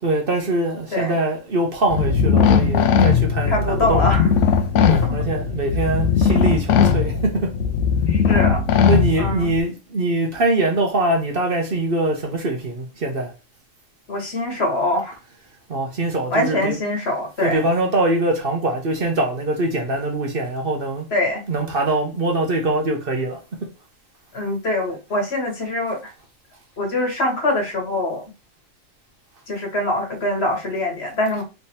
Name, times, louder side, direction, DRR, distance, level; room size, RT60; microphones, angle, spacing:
voice 1, 0.0-4.1 4.9-7.6 8.9-13.3 15.7-16.8 17.4-21.0 21.5-23.4, right 2 dB, 50° right, 1.0 m, -23 dB
sound 1, 1.9-9.6, left 6 dB, 75° left, 0.9 m, -18 dB
voice 2, 3.5-4.3 5.0-5.2 8.1-8.6 9.2-9.5 14.1-15.1 16.3-17.6 21.1-21.4 24.3-26.1 26.8-28.2 29.5-31.4, left 1 dB, 55° left, 1.5 m, -23 dB
3.4 x 3.2 x 4.2 m
omnidirectional pair, 1.3 m